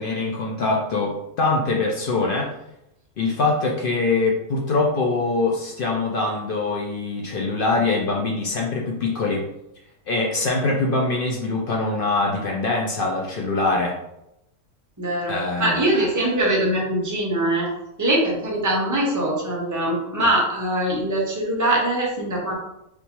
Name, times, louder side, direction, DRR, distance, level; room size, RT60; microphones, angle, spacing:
voice 1, 0.0-2.5 3.2-9.5 10.1-13.9 15.3-15.8, left 3 dB, 70° left, -2 dB, 0.5 m, -23 dB
voice 2, 15.0-17.7 18.0-22.5, right 1 dB, 20° right, -2 dB, 0.5 m, -22 dB
3.5 x 2.5 x 2.9 m, 0.85 s
omnidirectional pair, 1.4 m